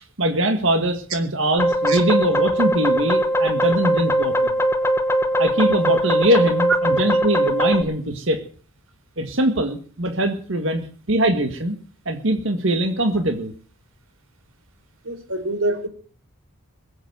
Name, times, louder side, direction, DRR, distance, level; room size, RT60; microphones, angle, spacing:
voice 1, 0.0-4.6 5.4-8.4 9.2-11.8 12.1-13.5, right 1 dB, 55° right, 6 dB, 1.7 m, -22 dB
sound 1, 1.6-7.8, equal, 10° left, 1.3 m, -20 dB
voice 2, 15.0-15.9, right 2 dB, 75° right, 7 dB, 4.0 m, -25 dB
21.0 x 8.2 x 7.9 m, 0.43 s
head